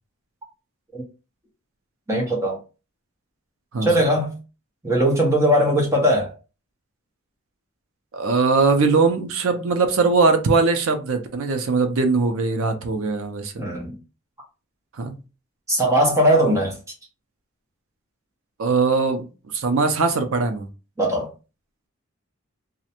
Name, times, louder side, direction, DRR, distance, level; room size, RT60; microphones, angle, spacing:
voice 1, 2.1-2.6 3.8-4.4 4.8-6.3 13.6-14.0 15.7-16.8 21.0-21.3, equal, 15° right, 0.6 m, -19 dB
voice 2, 8.1-13.6 15.0-15.2 18.6-20.7, right 4 dB, 75° right, 0.5 m, -21 dB
2.5 x 2.1 x 2.8 m
head